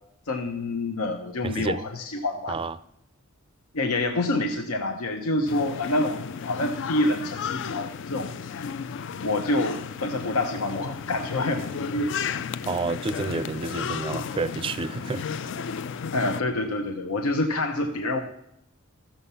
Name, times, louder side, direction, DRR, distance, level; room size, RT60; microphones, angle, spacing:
voice 1, 0.3-2.6 3.7-8.7 9.2-12.1 16.1-18.2, left 2 dB, 85° left, 0.9 m, -27 dB
voice 2, 1.4-1.8 2.5-2.8 12.7-15.2, right 4 dB, 25° right, 0.4 m, -30 dB
sound 1, 5.5-16.4, left 6 dB, 60° left, 0.4 m, -33 dB
14.0 x 7.1 x 5.6 m
head